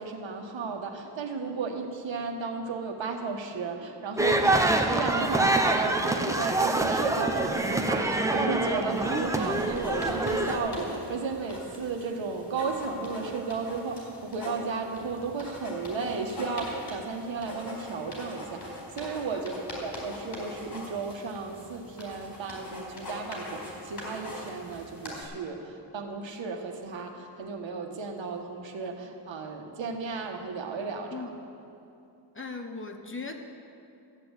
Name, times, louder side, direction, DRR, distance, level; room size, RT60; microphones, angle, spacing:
voice 1, 0.0-31.3, right 4 dB, 80° right, 3 dB, 1.5 m, -34 dB
sound 1, 4.2-10.6, right 2 dB, 5° right, 0.8 m, -26 dB
sound 2, 8.9-25.2, equal, 50° left, 4.3 m, -41 dB
voice 2, 32.3-33.4, left 4 dB, 25° left, 4 dB, 1.1 m, -38 dB
14.0 x 8.5 x 8.2 m, 2.7 s
wide cardioid pair, 140°, 45 cm